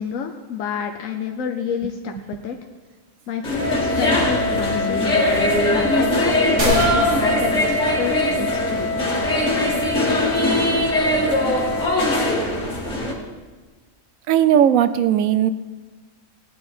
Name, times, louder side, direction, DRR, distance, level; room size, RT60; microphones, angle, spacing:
voice 1, 0.0-2.6 3.3-5.1 5.7-9.1, left 7 dB, 80° left, 3 dB, 1.2 m, -28 dB
sound 1, 3.4-13.1, left 1 dB, 60° left, 2.5 m, -21 dB
Wind instrument woodwind instrument, 3.5-12.4, left 2 dB, 30° right, 1.9 m, -27 dB
sound 2, 6.6-8.5, right 1 dB, 60° right, 2.6 m, -26 dB
voice 2, 14.3-15.5, right 10 dB, 85° right, 12 dB, 1.1 m, -17 dB
18.5 x 9.1 x 4.4 m, 1.3 s
omnidirectional pair, 1.4 m